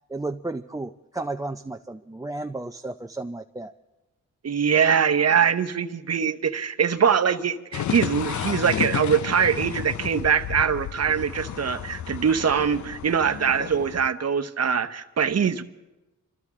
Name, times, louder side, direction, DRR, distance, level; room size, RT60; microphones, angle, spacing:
voice 1, 0.1-3.7, right 2 dB, 10° right, 6 dB, 0.4 m, -33 dB
voice 2, 4.4-15.6, right 7 dB, 50° right, 8 dB, 0.9 m, -23 dB
sound 1, 7.7-14.1, left 9 dB, 60° left, 0.5 m, -32 dB
26.0 x 14.5 x 3.7 m, 1.0 s
cardioid pair, 80°, 32 cm